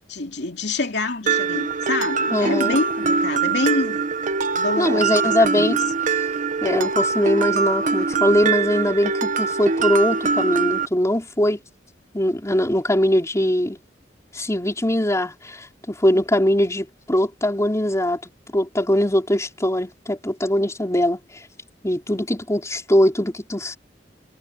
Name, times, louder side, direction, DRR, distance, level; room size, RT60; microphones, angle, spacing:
voice 1, 0.1-4.0 4.5-5.8, left 2 dB, 75° left, 2.8 m, -26 dB
Mallet percussion, 1.3-10.8, right 5 dB, 45° right, 1.1 m, -23 dB
voice 2, 2.3-2.8 4.8-5.8 6.6-11.6 12.1-13.8 14.3-18.2 18.5-21.2 21.8-23.8, left 1 dB, 15° left, 4.0 m, -21 dB
head